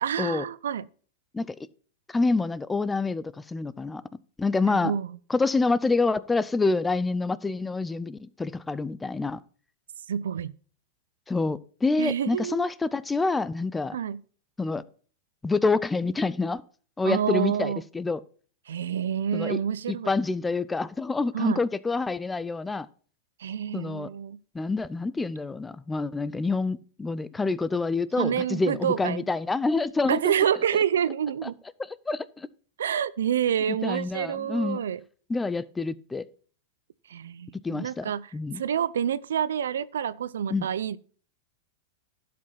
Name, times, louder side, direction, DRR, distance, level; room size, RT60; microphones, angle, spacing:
voice 1, 0.0-0.8 4.7-5.2 10.1-10.6 12.0-12.7 13.9-14.2 17.0-17.8 18.7-20.1 21.3-21.6 23.4-24.4 28.2-29.2 30.1-31.6 32.8-35.0 37.1-41.0, right 9 dB, 85° right, 0.5 m, -28 dB
voice 2, 2.1-4.0 4.4-4.9 5.3-9.4 11.3-14.0 14.6-14.8 15.4-16.6 17.0-18.2 19.3-19.6 19.9-22.9 23.7-24.1 24.5-30.3 31.4-31.5 32.1-32.5 33.7-34.8 35.3-36.2 37.6-38.6 40.5-40.7, left 3 dB, 10° left, 0.5 m, -27 dB
11.5 x 5.3 x 5.7 m
hypercardioid pair, 120°, 0 cm